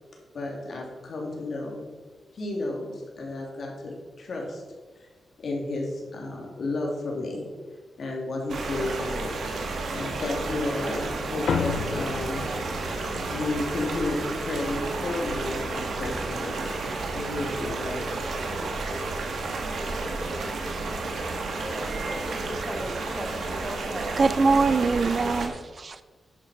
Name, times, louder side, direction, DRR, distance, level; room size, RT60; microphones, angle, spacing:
voice 1, 0.3-1.9 2.3-4.6 4.9-5.1 5.4-7.5 8.0-9.4 9.9-12.4 13.3-16.6 17.1-18.0, left 2 dB, 60° left, -1 dB, 3.2 m, -32 dB
sound 1, 8.5-25.5, right 3 dB, 75° right, 1.9 m, -31 dB
sound 2, 11.5-16.2, left 6 dB, 80° left, 0.7 m, -35 dB
voice 2, 21.5-24.1, equal, 5° right, 4 dB, 1.4 m, -38 dB
voice 3, 24.2-26.0, right 4 dB, 40° right, 12 dB, 0.5 m, -23 dB
10.5 x 8.2 x 5.3 m, 1.4 s
wide cardioid pair, 120°, 0 cm